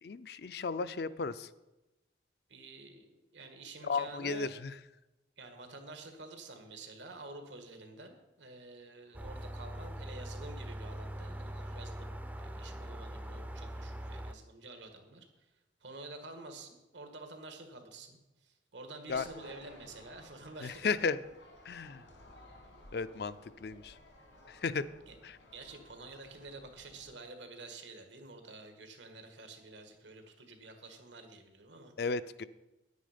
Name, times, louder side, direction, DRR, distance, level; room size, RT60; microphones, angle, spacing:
voice 1, 0.0-1.5 3.8-4.7 19.1-19.3 20.6-21.2 21.7-22.0 22.9-24.0 24.5-24.9 25.2-25.4 32.0-32.4, left 4 dB, 60° left, 14 dB, 0.4 m, -34 dB
voice 2, 2.5-4.5 5.4-15.3 15.8-21.0 25.1-25.2 25.5-31.9, right 2 dB, 85° right, 5 dB, 1.7 m, -49 dB
sound 1, 9.1-14.3, right 1 dB, 10° right, 0.4 m, -42 dB
sound 2, 19.1-27.1, left 1 dB, 85° left, 2.3 m, -57 dB
9.8 x 9.3 x 5.1 m, 1.0 s
head